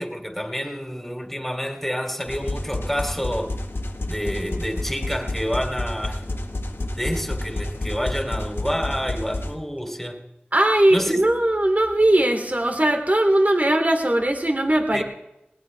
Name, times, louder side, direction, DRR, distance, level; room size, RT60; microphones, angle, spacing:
voice 1, 0.0-3.6 4.1-6.2 7.0-10.3 10.9-11.2 14.9-15.0, equal, 5° left, 3 dB, 3.2 m, -28 dB
sound 1, 2.3-9.5, left 1 dB, 85° left, 1.6 m, -29 dB
voice 2, 10.5-15.0, right 1 dB, 40° right, 4 dB, 2.8 m, -19 dB
20.5 x 20.0 x 3.4 m, 0.88 s
wide cardioid pair, 45°, 4 cm